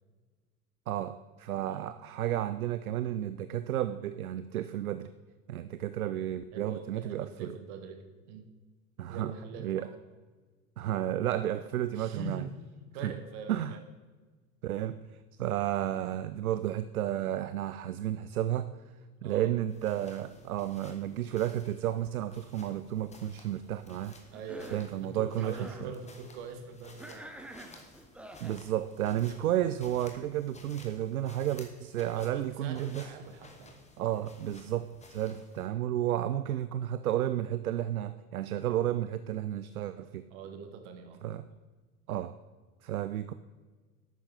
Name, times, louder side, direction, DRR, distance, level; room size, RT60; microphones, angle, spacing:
voice 1, 0.9-5.1 5.5-7.5 9.0-9.3 9.6-9.9 10.8-12.4 13.0-13.1 13.5-13.8 14.6-15.0 15.4-18.7 19.2-24.1 24.7-25.9 28.4-33.1 34.0-40.2 41.2-41.5 42.1-42.3 42.8-43.3, right 12 dB, 75° right, 13 dB, 0.5 m, -32 dB
voice 2, 6.5-8.4 9.1-9.9 11.9-12.7 12.9-13.8 19.2-19.5 24.3-27.3 32.1-33.8 40.3-41.2, right 5 dB, 50° right, 6 dB, 1.6 m, -43 dB
sound 1, 19.7-35.7, left 3 dB, 15° left, 1.5 m, -55 dB
Cough, 24.3-24.9 25.3-25.9 27.0-28.6, right 1 dB, 5° right, 0.7 m, -48 dB
12.0 x 8.8 x 3.6 m, 1.4 s
figure-of-eight pair, 75°, 44 cm